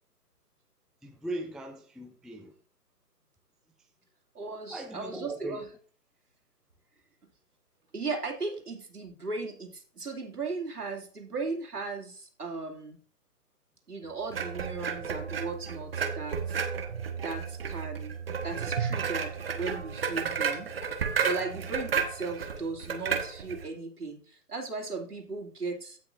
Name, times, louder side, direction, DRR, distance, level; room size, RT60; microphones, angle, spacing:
voice 1, 1.0-2.5 4.7-5.6, right 1 dB, ahead, 0.3 m, -39 dB
voice 2, 4.3-5.7 7.9-13.0 13.9-16.7 17.2-20.7 21.2-26.0, right 4 dB, 70° right, 2.8 m, -37 dB
sound 1, 14.3-23.7, right 6 dB, 40° right, 1.3 m, -32 dB
16.0 x 6.0 x 2.6 m
figure-of-eight pair, 140°, 47 cm